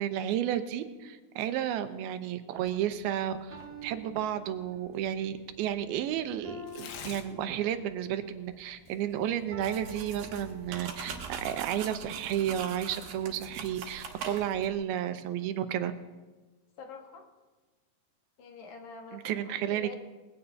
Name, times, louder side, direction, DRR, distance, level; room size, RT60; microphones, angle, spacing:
voice 1, 0.0-15.9 19.1-19.9, right 10 dB, 90° right, 9 dB, 2.7 m, -32 dB
Tearing, 2.6-14.1, left 6 dB, 80° left, 3.0 m, -54 dB
sound 1, 3.5-5.1 6.4-8.1 9.5-11.1, right 2 dB, 5° left, 1.5 m, -47 dB
sound 2, 9.6-14.7, right 5 dB, 75° right, 3.3 m, -42 dB
voice 2, 16.8-17.3 18.4-19.9, left 4 dB, 60° left, 2 dB, 2.6 m, -46 dB
21.0 x 16.5 x 2.8 m, 1.2 s
omnidirectional pair, 4.3 m